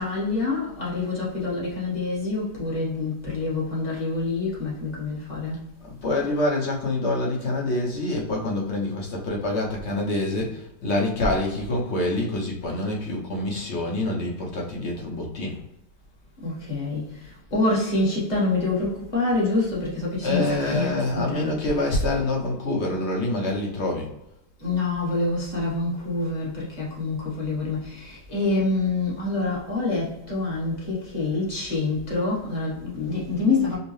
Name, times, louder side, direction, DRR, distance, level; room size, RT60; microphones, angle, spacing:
voice 1, 0.0-5.6 16.4-22.1 24.6-33.8, left 3 dB, 25° left, 1.1 m, -26 dB
voice 2, 5.9-15.6 20.2-24.1, left 2 dB, 50° left, 0.9 m, -26 dB
5.3 x 2.2 x 3.2 m
omnidirectional pair, 1.9 m